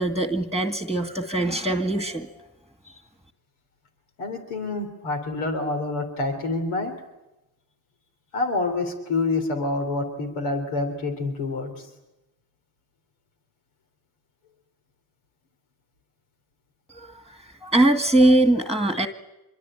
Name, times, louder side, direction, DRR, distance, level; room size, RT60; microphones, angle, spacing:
voice 1, 0.0-2.3 2.9-3.0 16.9-19.1, right 1 dB, ahead, 7 dB, 2.1 m, -22 dB
voice 2, 4.2-7.0 8.3-11.9, left 3 dB, 85° left, 6 dB, 3.6 m, -27 dB
25.5 x 23.0 x 9.0 m, 0.97 s
supercardioid pair, 55°, 49 cm